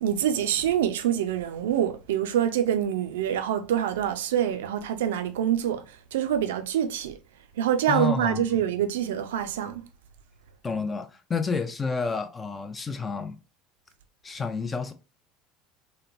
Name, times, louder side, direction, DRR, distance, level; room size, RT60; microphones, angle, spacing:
voice 1, 0.0-7.2 7.6-9.8, right 10 dB, 80° right, 0.4 m, -26 dB
voice 2, 7.9-8.5 10.6-13.4 14.2-14.9, left 5 dB, 25° left, 0.5 m, -30 dB
3.0 x 2.1 x 2.5 m
hypercardioid pair, 75°, 0 cm